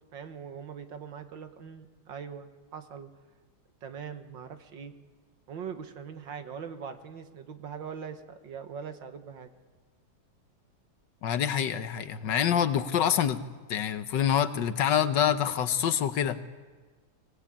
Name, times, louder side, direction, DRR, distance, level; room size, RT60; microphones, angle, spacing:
voice 1, 0.1-3.1 3.8-4.9 5.5-9.5, right 7 dB, 75° right, 7 dB, 2.2 m, -41 dB
voice 2, 11.2-13.4 13.7-16.4, left 9 dB, 70° left, 11 dB, 1.6 m, -26 dB
24.0 x 19.0 x 8.7 m, 1.4 s
omnidirectional pair, 2.0 m